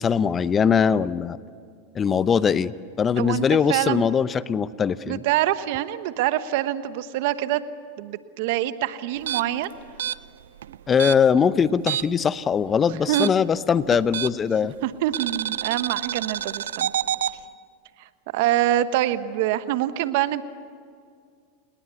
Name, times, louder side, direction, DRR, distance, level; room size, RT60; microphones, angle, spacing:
voice 1, 0.0-1.4 1.9-2.7 3.0-5.2 10.9-14.7, left 7 dB, 25° left, 16 dB, 0.7 m, -21 dB
voice 2, 3.2-4.0 5.1-7.6 8.0-9.7 13.1-13.3 14.8-16.9 18.3-20.4, right 13 dB, 65° right, 12 dB, 1.2 m, -25 dB
sound 1, 9.2-12.3 12.5-14.6 15.1-17.4, right 10 dB, 80° right, 0.6 m, -29 dB
29.0 x 20.0 x 8.2 m, 2.2 s
hypercardioid pair, 105°, 0 cm